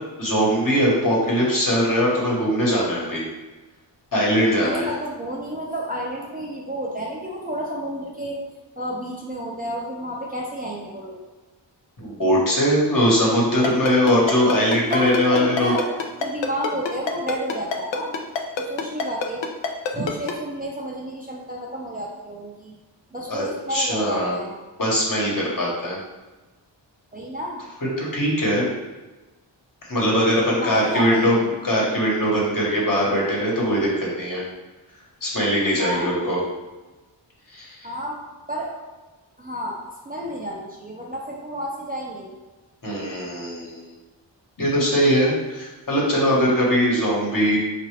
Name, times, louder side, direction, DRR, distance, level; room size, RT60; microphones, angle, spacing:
voice 1, 0.2-3.2 4.1-4.9 12.0-15.7 23.3-23.4 23.7-24.4 24.8-26.0 28.0-28.6 29.9-31.4 31.6-34.4 35.2-36.4 37.5-37.8 42.8-43.9 44.6-47.6, equal, 45° left, -4 dB, 1.2 m, -21 dB
voice 2, 4.6-8.4 8.8-11.2 14.7-15.9 16.2-18.1 18.6-19.5 19.9-22.8 23.1-24.5 27.1-27.6 30.4-31.5 35.8-36.3 37.8-38.2 38.5-38.7 39.4-39.8 40.0-42.4, equal, 20° right, -4 dB, 0.4 m, -31 dB
Ringtone, 13.6-20.3, left 5 dB, 70° left, 0.6 m, -25 dB
4.7 x 2.5 x 3.2 m, 1.2 s
wide cardioid pair, 125°, 45 cm